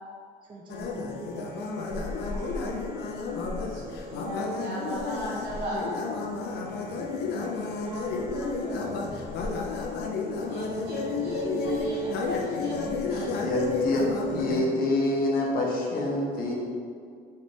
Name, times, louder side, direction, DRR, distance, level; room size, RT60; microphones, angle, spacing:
voice 1, 0.4-2.9 7.0-7.5 7.8-9.2, right 2 dB, 30° right, -3 dB, 0.5 m, -41 dB
sound 1, 0.7-14.6, left 4 dB, 75° left, 0.5 m, -32 dB
voice 2, 3.7-5.9 10.4-13.3, right 2 dB, 80° right, -6 dB, 1.3 m, -35 dB
voice 3, 13.4-14.1 14.3-16.5, left 2 dB, 60° left, -2 dB, 0.9 m, -26 dB
3.3 x 3.2 x 3.9 m, 2.1 s
cardioid pair, 110°, 17 cm